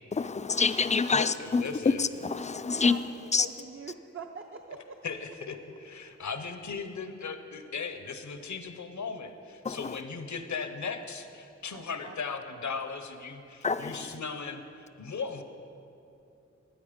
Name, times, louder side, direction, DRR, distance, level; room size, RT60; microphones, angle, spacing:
voice 1, 0.1-1.6 2.0-3.0 3.3-3.5 9.6-10.0 13.6-14.2, left 4 dB, 25° left, 12 dB, 0.4 m, -27 dB
voice 2, 1.1-2.0 5.0-15.4, left 5 dB, 75° left, 8 dB, 0.9 m, -37 dB
voice 3, 2.7-5.0 11.7-12.2 13.8-14.3, right 4 dB, 45° right, 3 dB, 0.7 m, -44 dB
12.5 x 9.2 x 5.1 m, 2.8 s
wide cardioid pair, 65°, 29 cm